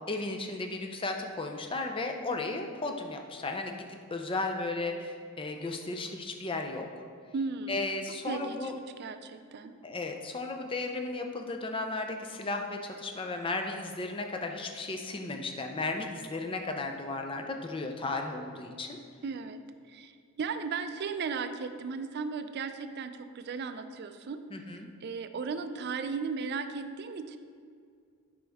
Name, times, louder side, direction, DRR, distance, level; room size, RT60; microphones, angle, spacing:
voice 1, 0.1-7.0 7.7-8.7 9.8-19.0 24.5-24.9, left 2 dB, 25° left, 4 dB, 0.5 m, -35 dB
voice 2, 7.3-7.8 8.3-8.7 9.0-9.7 19.2-19.6 19.9-20.1 20.4-24.4 25.0-27.4, right 5 dB, 50° right, 9 dB, 0.4 m, -36 dB
7.9 x 5.2 x 3.5 m, 2.1 s
head